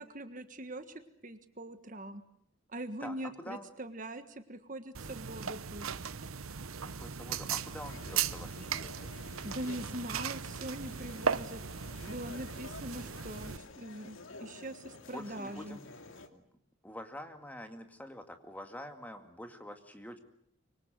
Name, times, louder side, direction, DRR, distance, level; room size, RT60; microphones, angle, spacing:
voice 1, 0.0-2.2 2.7-5.9 9.4-11.6 12.1-15.8, right 1 dB, 40° right, 9 dB, 1.5 m, -42 dB
voice 2, 3.0-3.7 6.8-9.1 15.1-15.8 16.3-16.4 16.8-20.2, left 1 dB, 10° left, 6 dB, 2.2 m, -46 dB
sound 1, 4.9-13.6, right 7 dB, 85° right, 1.0 m, -37 dB
sound 2, 7.9-16.3, left 2 dB, 70° left, 2.5 m, -51 dB
25.0 x 24.5 x 7.8 m, 0.70 s
head